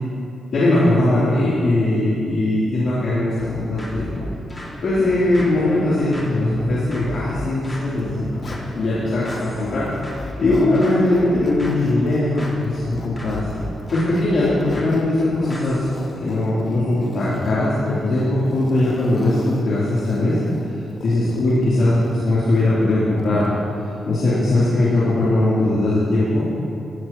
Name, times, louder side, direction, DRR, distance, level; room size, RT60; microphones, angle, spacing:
voice 1, 0.5-4.1 4.8-8.3 8.7-13.4 13.9-15.9 16.2-20.4 21.0-23.5 24.0-26.5, left 2 dB, 65° left, -11 dB, 3.4 m, -20 dB
sound 1, 3.4-16.0, left 1 dB, 25° left, 2.4 m, -34 dB
Zipper (clothing), 8.0-9.5 9.9-23.6, left 2 dB, 50° left, 1.3 m, -38 dB
17.5 x 12.0 x 3.1 m, 2.5 s
cardioid pair, 80°, 0 cm